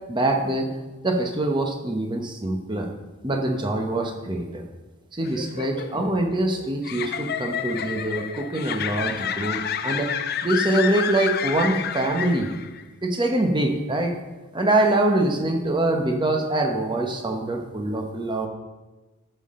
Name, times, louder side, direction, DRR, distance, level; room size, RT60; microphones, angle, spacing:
voice 1, 0.1-0.7 1.0-2.9 3.2-4.6 5.1-10.1 10.4-12.5 13.0-14.2 14.5-18.5, right 2 dB, 20° right, 3 dB, 1.0 m, -24 dB
sound 1, 5.2-12.8, left 8 dB, 45° left, 0.5 m, -30 dB
12.5 x 7.5 x 3.8 m, 1.2 s
head